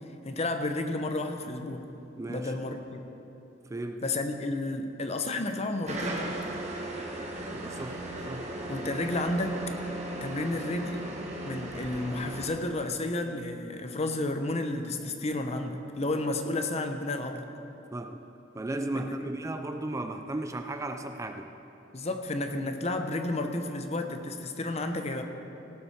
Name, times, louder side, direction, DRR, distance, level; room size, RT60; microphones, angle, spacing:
voice 1, 0.2-1.9 2.3-3.0 4.0-6.4 8.7-9.7 10.2-11.1 11.4-17.5 18.9-19.3 21.9-25.2, left 2 dB, 35° left, 6 dB, 0.8 m, -32 dB
voice 2, 2.2-2.5 3.7-4.0 7.5-8.5 17.9-18.3 18.5-21.5, right 2 dB, 15° right, 6 dB, 0.4 m, -35 dB
sound 1, 5.9-12.5, right 1 dB, 40° right, 1.4 m, -37 dB
17.5 x 6.1 x 6.4 m, 2.9 s
head